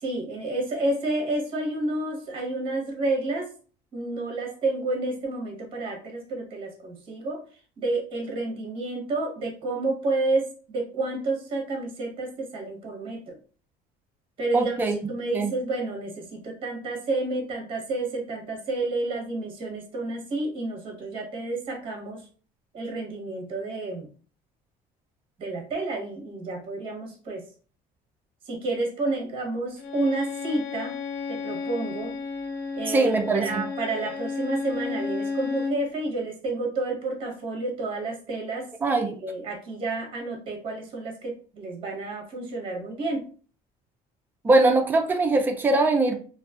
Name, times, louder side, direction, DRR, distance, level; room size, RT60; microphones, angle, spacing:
voice 1, 0.0-3.5 3.9-7.4 7.8-13.4 14.4-22.2 22.7-24.1 25.4-27.4 28.5-31.0 31.3-32.1 32.7-43.3, right 2 dB, 35° right, 1 dB, 0.9 m, -30 dB
voice 2, 14.5-15.0 15.3-15.5 32.9-33.6 38.8-39.1 44.4-46.2, right 2 dB, 10° right, 3 dB, 0.3 m, -21 dB
Bowed string instrument, 29.8-35.8, left 4 dB, 65° left, 0.6 m, -32 dB
2.5 x 2.3 x 2.3 m, 0.40 s
cardioid pair, 170°, 16 cm